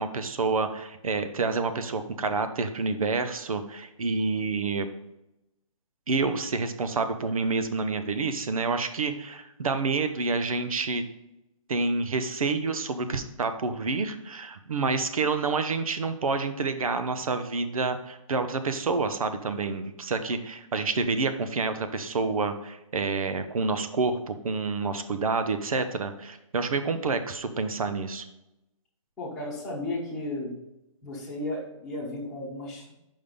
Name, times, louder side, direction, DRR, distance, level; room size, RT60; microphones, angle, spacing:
voice 1, 0.0-4.9 6.1-11.0 11.7-28.2, right 4 dB, 85° right, 9 dB, 0.9 m, -28 dB
voice 2, 29.2-30.6 31.0-32.9, left 2 dB, ahead, -11 dB, 1.0 m, -34 dB
5.6 x 5.3 x 5.3 m, 0.89 s
hypercardioid pair, 175°, 17 cm